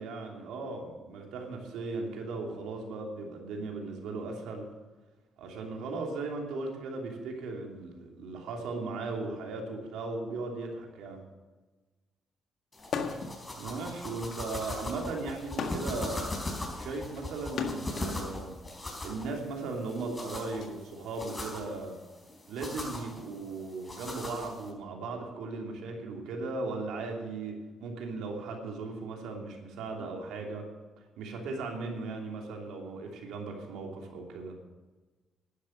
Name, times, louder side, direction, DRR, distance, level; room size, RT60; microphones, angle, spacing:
voice 1, 0.0-4.6 5.4-11.2 13.6-16.3 16.8-18.5 19.0-22.0 22.5-30.6 31.2-34.5, right 3 dB, 85° right, 1 dB, 3.0 m, -37 dB
sound 1, 12.7-24.7, left 2 dB, 25° left, 4.2 m, -40 dB
sound 2, 12.8-13.4 13.8-18.1 19.0-20.7, left 5 dB, 65° left, 1.7 m, -38 dB
11.5 x 10.0 x 6.5 m, 1.2 s
cardioid pair, 90°, 0 cm